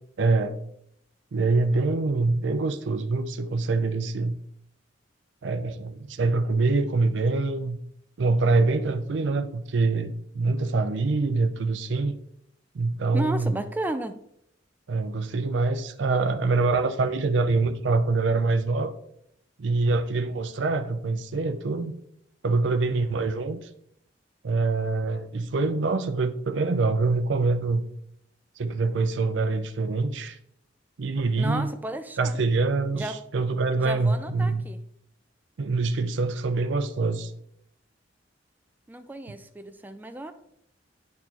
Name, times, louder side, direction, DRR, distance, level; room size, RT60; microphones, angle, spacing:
voice 1, 0.2-0.6 1.3-4.4 5.4-7.8 8.2-12.2 12.7-13.7 14.9-18.9 19.6-21.9 22.4-23.6 24.4-27.8 28.6-30.4 31.0-31.7 32.2-34.6 35.6-37.3, right 3 dB, 70° right, 0.5 m, -25 dB
voice 2, 13.1-14.2 31.4-32.4 32.9-33.2 33.8-34.8 38.9-40.3, right 1 dB, 10° right, 0.3 m, -33 dB
9.3 x 4.4 x 2.9 m
head